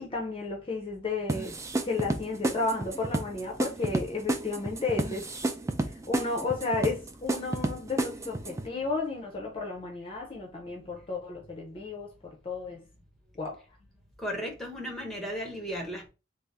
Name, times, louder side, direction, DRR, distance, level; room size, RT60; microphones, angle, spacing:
voice 1, 0.0-1.6 1.8-5.4 5.8-12.9 13.4-13.6, left 3 dB, 30° left, 0.6 m, -33 dB
sound 1, 1.3-8.7, right 2 dB, 15° right, 0.4 m, -31 dB
voice 2, 14.2-16.1, equal, ahead, 0.9 m, -35 dB
3.5 x 2.0 x 4.0 m
head